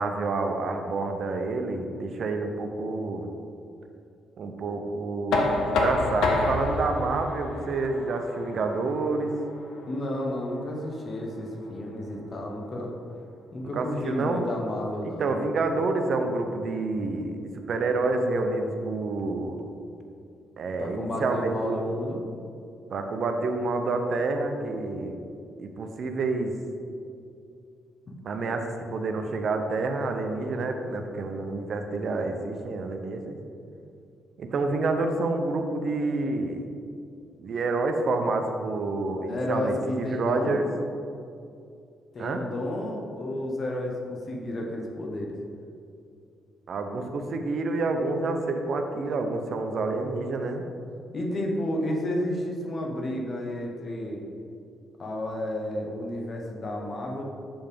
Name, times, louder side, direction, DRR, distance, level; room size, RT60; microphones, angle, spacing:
voice 1, 0.0-3.3 4.4-9.3 13.7-14.4 15.0-19.6 20.6-21.9 22.9-25.2 25.6-26.5 28.2-33.4 34.4-36.6 37.4-40.7 42.2-42.4 46.7-50.6, right 3 dB, 55° right, 5 dB, 0.7 m, -28 dB
Knock, 5.3-11.1, left 2 dB, 80° left, 0.7 m, -29 dB
voice 2, 9.9-12.9 13.5-15.4 20.8-22.2 39.3-40.6 42.1-45.4 51.1-54.2 55.0-57.2, left 1 dB, 45° left, 0 dB, 1.2 m, -31 dB
7.1 x 3.4 x 5.2 m, 2.5 s
cardioid pair, 90°, 0 cm